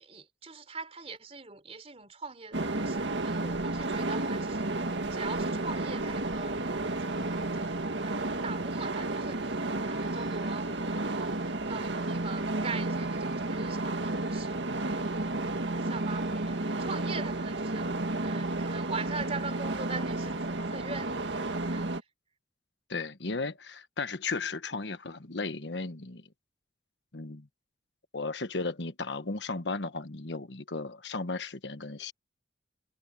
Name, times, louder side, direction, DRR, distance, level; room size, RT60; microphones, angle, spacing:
voice 1, 0.0-17.9 18.2-22.0, right 4 dB, 35° right, 3.7 m, -42 dB
sound 1, 2.5-22.0, right 2 dB, 85° right, 1.8 m, -32 dB
voice 2, 22.9-26.3 27.1-27.5 28.1-32.1, left 3 dB, 75° left, 1.3 m, -35 dB
head